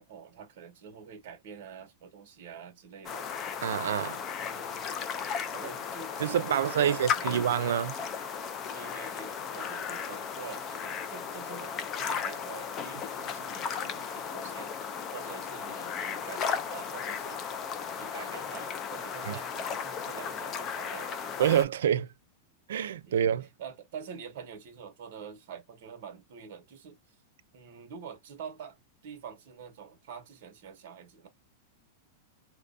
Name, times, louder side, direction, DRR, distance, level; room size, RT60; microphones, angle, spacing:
voice 1, 0.0-3.3 4.4-4.9 5.5-7.5 8.7-14.7 15.1-17.6 18.0-21.4 23.1-23.2 23.6-27.0 27.5-31.3, right 7 dB, 50° right, 0.9 m, -46 dB
sound 1, 3.0-21.6, left 7 dB, 20° left, 0.3 m, -35 dB
voice 2, 3.6-4.2 6.2-7.9 19.3-19.4 21.4-22.1 22.7-23.5, right 9 dB, 85° right, 0.3 m, -27 dB
2.5 x 2.1 x 2.4 m
supercardioid pair, 175°, 0 cm